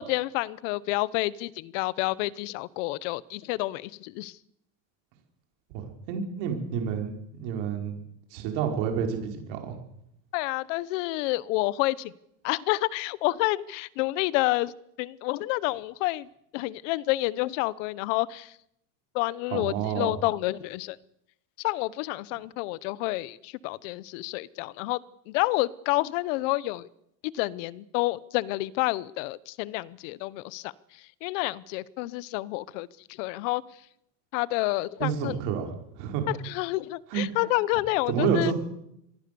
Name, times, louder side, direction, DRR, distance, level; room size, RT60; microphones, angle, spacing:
voice 1, 0.0-4.3 10.3-12.1 12.4-14.7 15.0-16.3 16.5-18.5 19.1-21.0 21.6-25.0 25.3-26.9 27.2-30.7 31.2-32.9 33.2-33.6 34.3-35.3 36.3-38.5, left 19 dB, 65° left, 21 dB, 1.0 m, -29 dB
voice 2, 5.7-7.9 8.3-9.8 19.5-20.1 35.0-36.3 37.1-37.2 38.1-38.5, right 7 dB, 65° right, 4 dB, 5.3 m, -29 dB
25.5 x 20.0 x 7.0 m, 0.79 s
cardioid pair, 170°, 40 cm